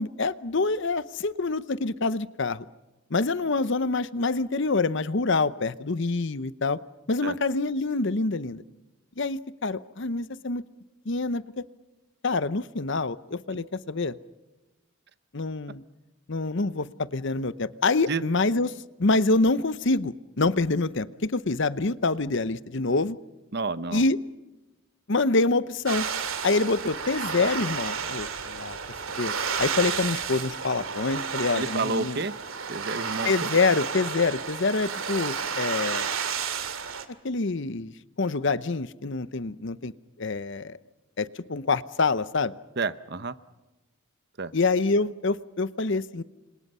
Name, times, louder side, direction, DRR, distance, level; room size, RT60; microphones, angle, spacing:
voice 1, 0.0-2.6 3.1-6.8 7.1-8.6 9.2-10.6 11.1-11.6 12.2-14.2 15.3-15.8 16.3-18.7 19.0-23.2 23.9-24.2 25.1-26.1 26.4-28.8 29.2-32.2 33.2-36.1 37.2-37.9 38.2-39.9 40.2-40.8 41.2-42.5 44.5-46.2, left 3 dB, 55° left, 16 dB, 0.8 m, -26 dB
voice 2, 23.5-24.0 31.5-32.3 32.7-33.5 42.8-43.4 44.4-44.5, right 3 dB, 50° right, 14 dB, 0.9 m, -30 dB
sound 1, 25.9-37.0, right 6 dB, 65° right, 2.4 m, -31 dB
29.5 x 26.0 x 5.6 m, 1.1 s
head